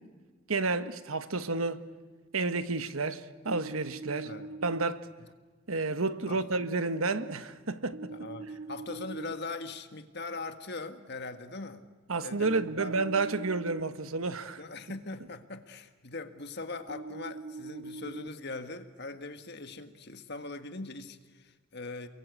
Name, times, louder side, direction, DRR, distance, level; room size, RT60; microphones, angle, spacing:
voice 1, 0.5-1.8 2.3-4.3 4.6-5.1 5.7-8.1 12.1-14.6, right 3 dB, 85° right, 1.3 m, -31 dB
sound 1, 3.5-4.8 7.9-9.3 12.4-13.8 16.9-18.3, right 3 dB, 60° right, 1.4 m, -42 dB
voice 2, 8.1-11.8 12.2-12.9 14.6-22.1, left 3 dB, 50° left, 1.7 m, -41 dB
29.0 x 22.5 x 8.3 m
head